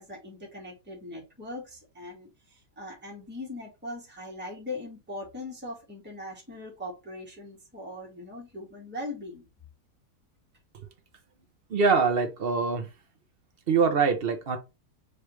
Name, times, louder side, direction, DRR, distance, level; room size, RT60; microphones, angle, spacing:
voice 1, 0.0-9.4, left 2 dB, 5° right, 1.6 m, -40 dB
voice 2, 11.7-12.9 13.7-14.6, right 5 dB, 50° right, 0.7 m, -24 dB
5.2 x 3.4 x 3.0 m
omnidirectional pair, 1.8 m